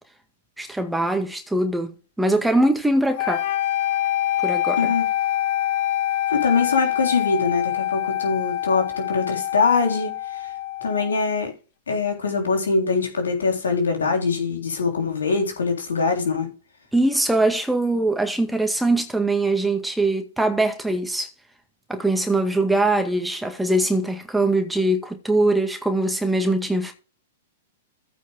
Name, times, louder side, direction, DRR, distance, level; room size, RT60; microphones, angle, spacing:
voice 1, 0.6-3.4 4.4-4.9 16.9-21.3 21.9-26.9, right 2 dB, 5° right, 1.8 m, -22 dB
sound 1, 3.2-11.2, left 12 dB, 45° left, 0.9 m, -25 dB
voice 2, 4.8-5.1 6.3-10.5 10.8-11.5 11.9-16.5, left 4 dB, 70° left, 3.6 m, -23 dB
15.0 x 5.3 x 3.6 m
figure-of-eight pair, 105°, 0 cm